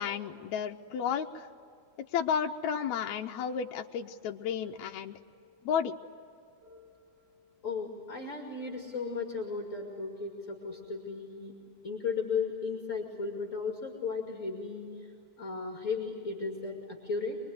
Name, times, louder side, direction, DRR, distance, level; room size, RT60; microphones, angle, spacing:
voice 1, 0.0-1.5 2.1-5.2 5.6-6.0, left 7 dB, 75° left, 3 dB, 2.0 m, -32 dB
sound 1, 4.6-5.8 6.6-7.8 8.6-9.8 10.6-11.8, left 3 dB, 80° right, 9.6 m, -59 dB
voice 2, 7.6-11.5 11.8-15.1 15.4-17.4, left 4 dB, 30° left, 1 dB, 2.3 m, -35 dB
25.5 x 22.0 x 9.4 m, 2.5 s
omnidirectional pair, 3.4 m